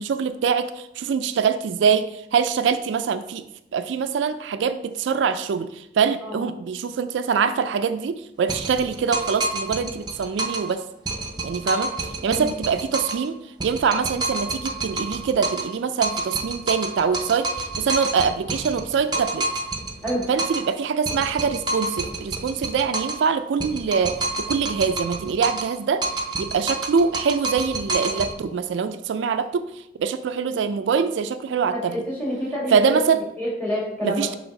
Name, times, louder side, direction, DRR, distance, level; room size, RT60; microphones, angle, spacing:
voice 1, 0.0-3.4 3.7-10.8 11.4-19.5 20.3-26.1 26.4-32.0 32.7-33.2 34.0-34.3, right 6 dB, 75° right, 10 dB, 0.3 m, -24 dB
sound 1, 8.5-10.7 11.1-13.3 13.6-20.7 21.1-23.3 23.6-25.7 26.0-28.3, right 2 dB, 20° right, 0.6 m, -28 dB
voice 2, 31.7-33.1 33.4-34.4, equal, 10° left, -5 dB, 2.2 m, -27 dB
6.2 x 3.5 x 4.9 m, 0.84 s
head